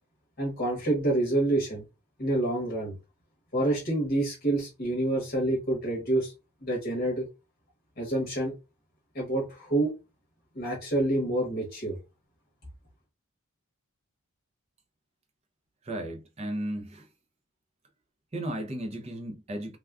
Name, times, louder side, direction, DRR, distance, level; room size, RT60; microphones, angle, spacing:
voice 1, 0.4-1.8 2.2-2.9 3.5-6.3 6.6-7.3 8.0-8.5 9.1-9.9 10.5-11.9, right 1 dB, 40° left, 0.9 m, -27 dB
voice 2, 15.9-17.0 18.3-19.8, right 1 dB, 30° right, 0.5 m, -34 dB
3.3 x 2.3 x 2.3 m
head